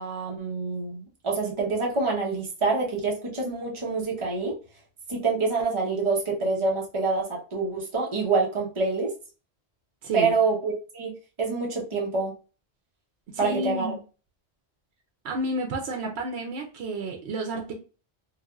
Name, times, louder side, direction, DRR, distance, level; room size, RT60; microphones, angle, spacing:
voice 1, 0.0-4.5 5.1-9.1 10.1-11.1 11.4-12.3 13.4-13.9, right 4 dB, 30° right, -2 dB, 0.8 m, -26 dB
voice 2, 10.0-10.3 13.3-14.0 15.2-17.7, right 2 dB, 75° right, 2 dB, 0.9 m, -31 dB
3.3 x 2.4 x 2.2 m, 0.35 s
omnidirectional pair, 1.1 m